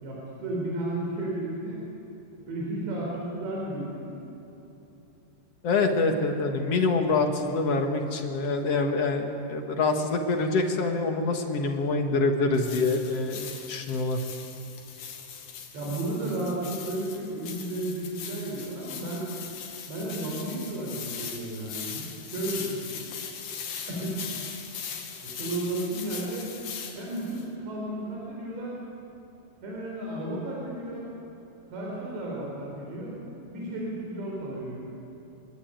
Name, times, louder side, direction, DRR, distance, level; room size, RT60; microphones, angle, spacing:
voice 1, 0.0-1.8 2.5-4.1 15.7-19.2 19.9-22.8 23.9-24.1 25.2-26.5 27.0-28.8 29.6-31.1 31.7-33.2 33.5-34.8, right 1 dB, 75° right, -3 dB, 7.2 m, -33 dB
voice 2, 5.6-14.2, left 3 dB, 55° left, 4 dB, 1.8 m, -26 dB
sound 1, 12.5-27.4, left 7 dB, 85° left, 4.5 m, -40 dB
25.0 x 22.5 x 9.2 m, 3.0 s
omnidirectional pair, 5.0 m